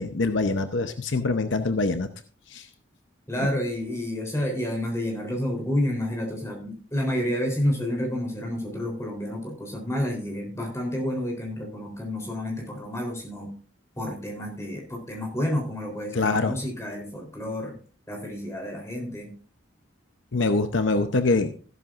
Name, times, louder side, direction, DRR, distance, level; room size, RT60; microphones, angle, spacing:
voice 1, 0.0-2.1 2.5-2.7 16.1-16.5 20.3-21.5, left 3 dB, 70° left, 8 dB, 0.8 m, -24 dB
voice 2, 3.3-13.5 14.0-17.8 18.1-19.3, left 1 dB, 15° left, 1 dB, 3.7 m, -29 dB
14.0 x 12.0 x 2.5 m, 0.40 s
head